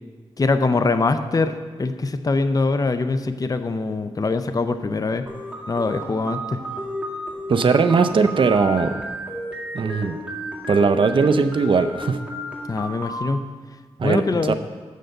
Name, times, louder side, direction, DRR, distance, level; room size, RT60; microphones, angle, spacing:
voice 1, 0.4-5.3 5.7-6.6 12.7-13.5 14.0-14.5, left 3 dB, 35° left, 10 dB, 0.5 m, -23 dB
sound 1, 5.3-13.3, right 1 dB, 10° right, 2.1 m, -32 dB
voice 2, 7.5-9.0 9.7-10.2 10.7-12.2 14.0-14.5, right 4 dB, 50° right, 8 dB, 0.5 m, -19 dB
6.5 x 6.5 x 7.7 m, 1.5 s
cardioid pair, 60°, 11 cm